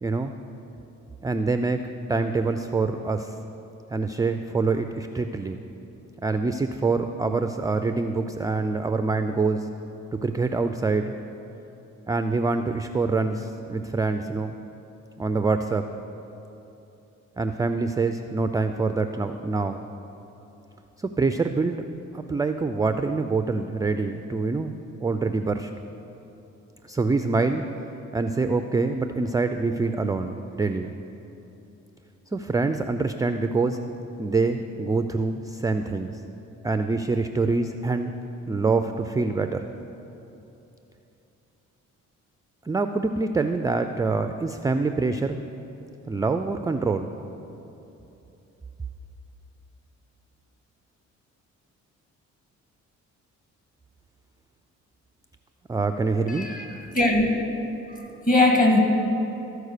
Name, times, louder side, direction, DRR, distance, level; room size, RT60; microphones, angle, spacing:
voice 1, 0.0-0.3 1.2-3.3 3.9-5.6 6.2-9.7 10.2-11.1 12.1-14.5 15.2-15.9 17.4-19.9 21.0-21.8 22.1-24.7 25.0-25.7 26.8-27.6 28.1-31.0 32.3-33.8 34.2-36.2 36.6-38.1 38.5-39.7 42.6-45.4 46.1-47.1 55.7-56.5, right 3 dB, 10° right, 8 dB, 0.3 m, -25 dB
voice 2, 56.3-57.3 57.9-58.8, left 2 dB, 25° left, 1 dB, 1.9 m, -21 dB
14.0 x 4.7 x 6.6 m, 3.0 s
cardioid pair, 90°, 30 cm